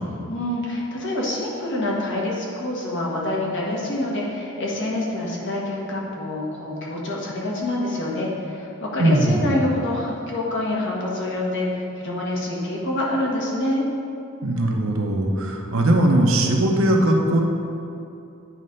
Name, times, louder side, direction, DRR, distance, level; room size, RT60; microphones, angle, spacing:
voice 1, 0.3-13.8, left 1 dB, 60° left, -4 dB, 1.3 m, -26 dB
voice 2, 9.0-9.6 14.4-17.4, right 1 dB, 70° right, 1 dB, 0.8 m, -19 dB
9.1 x 3.3 x 5.3 m, 2.6 s
head